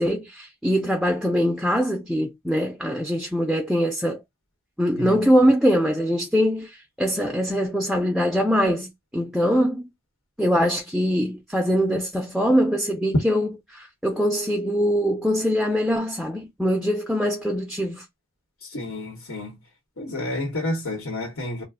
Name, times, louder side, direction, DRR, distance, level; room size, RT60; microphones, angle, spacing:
voice 1, 0.0-4.2 4.8-9.9 10.4-18.0, equal, ahead, 0.4 m, -23 dB
voice 2, 18.7-19.6 20.0-21.6, left 1 dB, 85° left, 1.1 m, -30 dB
2.4 x 2.1 x 3.5 m
head